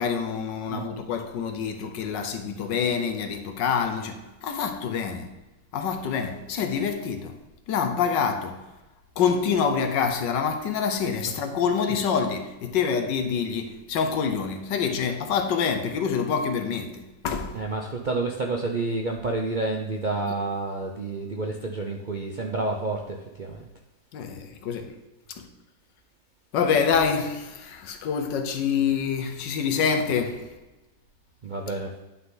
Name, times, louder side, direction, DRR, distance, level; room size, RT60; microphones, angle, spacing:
voice 1, 0.0-5.3 5.7-7.4 7.7-8.6 9.2-17.6 24.1-24.9 25.4-25.5 26.5-30.5, left 6 dB, 90° left, 1.6 m, -26 dB
voice 2, 17.5-23.7 31.4-31.9, right 2 dB, 55° right, 0.5 m, -29 dB
10.0 x 5.9 x 3.8 m
omnidirectional pair, 1.9 m